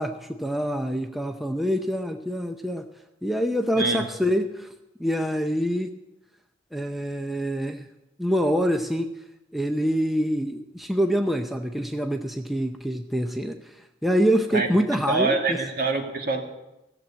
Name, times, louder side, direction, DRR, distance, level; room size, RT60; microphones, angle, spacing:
voice 1, 0.0-2.8 3.2-4.7 5.0-5.9 6.7-7.9 8.2-9.1 9.5-13.8 14.0-15.6, equal, ahead, 5 dB, 0.6 m, -25 dB
voice 2, 14.5-16.4, right 3 dB, 55° right, 1 dB, 2.3 m, -25 dB
15.5 x 7.6 x 8.6 m, 0.95 s
head